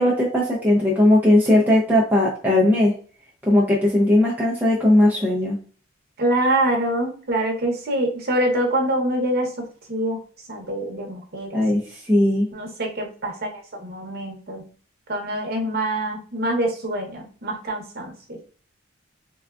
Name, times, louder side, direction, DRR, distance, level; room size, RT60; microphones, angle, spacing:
voice 1, 0.0-2.9 3.4-5.6 11.5-12.5, left 1 dB, 10° right, -4 dB, 0.5 m, -18 dB
voice 2, 6.2-10.2 10.5-11.6 12.5-14.6 15.1-18.1, right 1 dB, 50° right, 1 dB, 0.8 m, -25 dB
3.5 x 2.3 x 2.3 m, 0.42 s
head